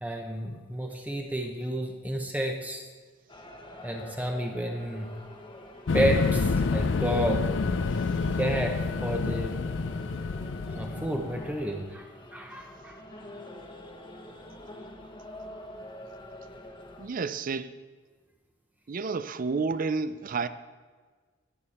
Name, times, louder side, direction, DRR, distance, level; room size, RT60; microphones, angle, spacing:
voice 1, 0.0-2.8 3.8-5.1 5.9-7.5 8.4-8.8 9.0-9.5 10.7-12.1 12.3-13.0, right 1 dB, 10° right, 0.8 m, -30 dB
sound 1, 3.3-17.1, left 1 dB, 25° left, 1.1 m, -46 dB
sound 2, 5.9-11.7, left 4 dB, 70° left, 0.5 m, -28 dB
voice 2, 17.0-17.7 18.9-20.5, right 4 dB, 45° right, 0.5 m, -30 dB
17.0 x 6.8 x 4.2 m
head